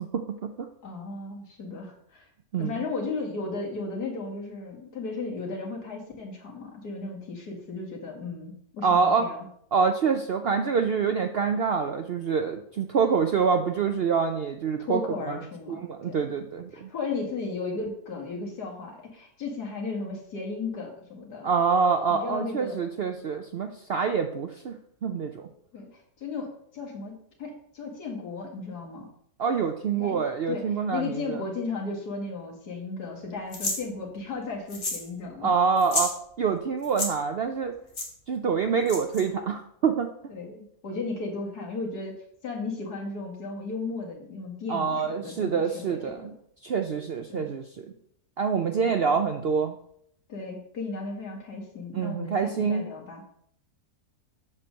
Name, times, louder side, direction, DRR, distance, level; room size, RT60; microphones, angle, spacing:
voice 1, 0.0-0.7 2.5-2.8 8.8-9.3 9.7-15.0 15.3-15.4 15.7-16.9 21.4-25.5 29.4-31.4 35.4-36.1 36.4-37.8 38.3-40.1 44.7-46.3 46.6-47.6 48.4-49.8 51.9-52.9, right 6 dB, 65° right, 6 dB, 0.6 m, -26 dB
voice 2, 0.8-2.3 2.6-9.5 14.9-16.1 16.7-21.6 22.1-22.8 25.7-29.1 29.9-35.5 40.3-42.2 42.4-46.3 47.3-47.5 48.8-49.1 50.3-53.2, left 3 dB, 75° left, 0 dB, 2.3 m, -35 dB
sound 1, 33.5-33.8 34.7-35.1 35.3-35.4 35.8-36.1 36.8-37.1 37.9-38.1 38.9-39.2, left 2 dB, 40° left, 1.7 m, -29 dB
7.7 x 4.5 x 6.3 m, 0.69 s
omnidirectional pair, 1.7 m